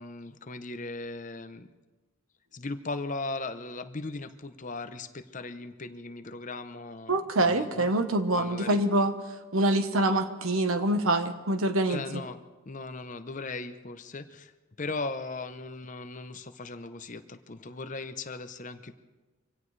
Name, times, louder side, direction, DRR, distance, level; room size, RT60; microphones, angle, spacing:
voice 1, 0.0-1.7 2.5-7.9 8.3-8.8 11.9-12.4 12.7-14.5 14.8-19.0, left 3 dB, 35° left, 10 dB, 0.7 m, -38 dB
voice 2, 7.1-9.1 9.5-12.0, right 1 dB, 85° right, 8 dB, 1.2 m, -25 dB
25.0 x 17.0 x 3.3 m, 1.2 s
head